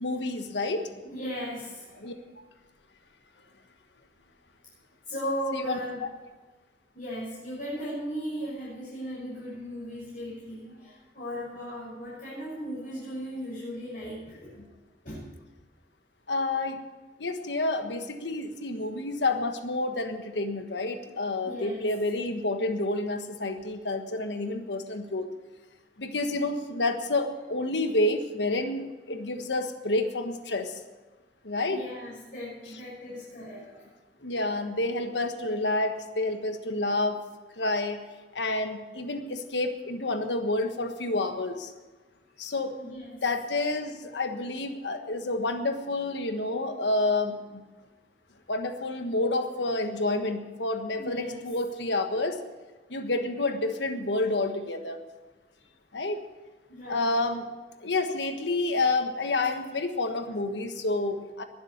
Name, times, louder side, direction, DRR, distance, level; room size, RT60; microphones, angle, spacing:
voice 1, 0.0-0.9 2.0-2.1 5.5-6.1 16.3-16.8 17.2-25.2 26.0-30.7 31.4-31.8 34.2-37.2 37.6-38.0 38.3-41.7 42.4-42.7 43.2-47.6 48.5-52.4 52.9-55.0 55.9-56.2 56.9-57.5 57.8-61.4, left 2 dB, 85° left, 6 dB, 1.4 m, -29 dB
voice 2, 0.8-2.2 5.1-6.0 6.9-14.6 15.0-15.3 21.4-21.9 31.7-33.9 42.8-43.2 51.0-51.4 56.7-57.2 60.2-60.3, equal, 50° left, -9 dB, 6.5 m, -37 dB
21.0 x 7.6 x 6.6 m, 1.3 s
head